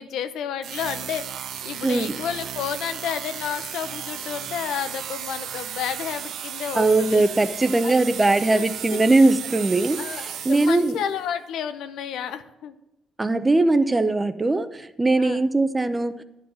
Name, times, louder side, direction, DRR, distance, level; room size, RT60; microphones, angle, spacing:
voice 1, 0.0-7.2 7.8-7.9 8.4-8.6 8.9-9.0 10.0-12.7 15.2-15.4, left 8 dB, 80° left, 10 dB, 0.7 m, -31 dB
sound 1, 0.6-11.2, right 9 dB, 75° right, 0.5 m, -35 dB
voice 2, 1.8-2.1 6.7-10.9 13.2-16.2, right 2 dB, 20° right, 11 dB, 0.7 m, -20 dB
10.5 x 4.7 x 7.7 m, 0.90 s
cardioid pair, 90°, 0 cm